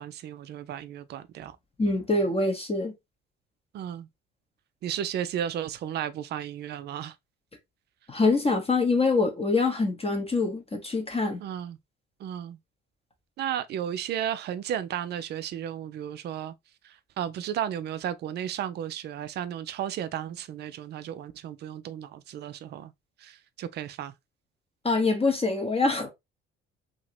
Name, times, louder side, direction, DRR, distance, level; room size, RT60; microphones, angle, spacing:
voice 1, 0.0-1.6 3.7-4.1 4.8-7.1 11.4-11.8 12.2-12.6 13.4-16.5 16.8-22.9 23.2-24.1, right 10 dB, 30° right, 0.4 m, -34 dB
voice 2, 1.8-2.9 8.1-11.4 24.8-26.1, left 3 dB, 15° left, 0.7 m, -25 dB
2.8 x 2.6 x 2.8 m
figure-of-eight pair, 50°, 34 cm